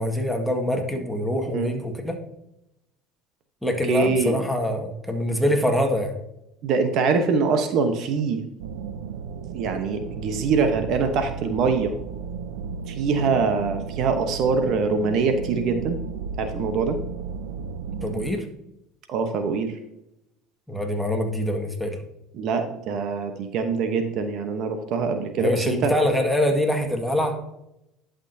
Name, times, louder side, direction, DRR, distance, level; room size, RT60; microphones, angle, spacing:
voice 1, 0.0-2.2 3.6-6.2 18.0-18.5 20.7-22.0 25.4-27.4, left 1 dB, ahead, 3 dB, 1.7 m, -24 dB
voice 2, 3.9-4.4 6.6-8.4 9.5-11.9 12.9-16.0 16.4-17.0 19.1-19.7 22.3-25.9, right 5 dB, 60° right, 7 dB, 1.0 m, -24 dB
sound 1, 8.6-18.3, right 5 dB, 80° right, 0.6 m, -34 dB
11.0 x 6.3 x 2.7 m, 0.85 s
hypercardioid pair, 75°, 0 cm